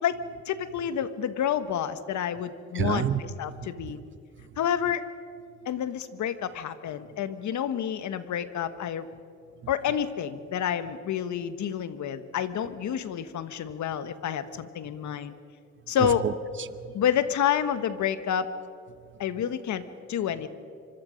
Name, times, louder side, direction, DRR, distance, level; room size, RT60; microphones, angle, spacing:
voice 1, 0.0-3.0 3.4-4.0 4.6-5.0 5.6-9.1 9.7-15.3 15.9-16.2 16.9-18.5 19.2-20.5, left 9 dB, 70° left, 12 dB, 1.3 m, -29 dB
voice 2, 2.7-3.2 3.5-4.0 4.4-4.6 5.6-5.7 7.1-7.2 9.6-10.0 14.8-15.2 15.8-17.0 18.9-19.4, right 8 dB, 40° right, 14 dB, 0.9 m, -33 dB
25.0 x 25.0 x 5.2 m, 2.3 s
cardioid pair, 90°, 30 cm